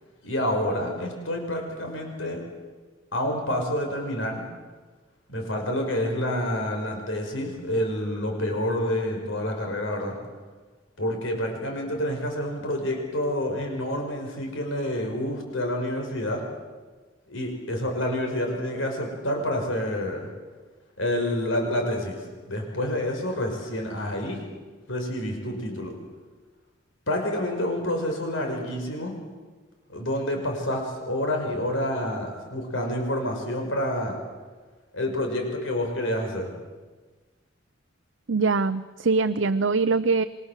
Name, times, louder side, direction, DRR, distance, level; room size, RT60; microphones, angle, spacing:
voice 1, 0.2-2.4 3.1-4.4 5.3-10.2 11.0-16.4 17.3-20.3 21.0-24.4 24.9-25.9 27.1-29.1 29.9-34.2 34.9-36.5, left 1 dB, 85° left, 3 dB, 5.5 m, -28 dB
voice 2, 38.3-40.2, right 4 dB, 70° right, 10 dB, 0.7 m, -23 dB
28.5 x 23.5 x 7.4 m, 1.4 s
head